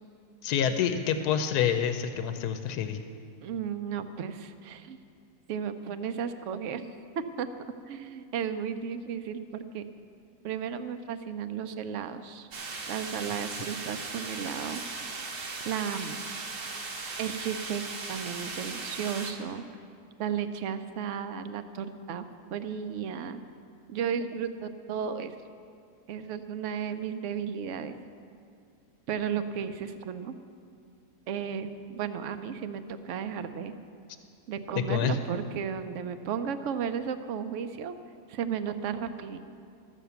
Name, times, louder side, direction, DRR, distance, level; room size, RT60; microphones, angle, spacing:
voice 1, 0.4-3.0 34.9-35.2, left 8 dB, 85° left, 8 dB, 1.1 m, -27 dB
voice 2, 3.4-5.0 5.5-6.9 7.4-7.5 7.9-9.9 10.4-12.5 12.9-14.8 15.6-16.2 17.2-17.8 18.1-19.6 20.2-23.4 23.9-25.3 26.1-28.0 29.1-30.4 31.3-33.7 34.5-37.9 38.3-39.4, right 7 dB, 65° right, 10 dB, 0.8 m, -34 dB
sound 1, 12.5-19.3, right 3 dB, 80° right, 1.7 m, -38 dB
13.5 x 7.2 x 6.9 m, 2.4 s
omnidirectional pair, 1.6 m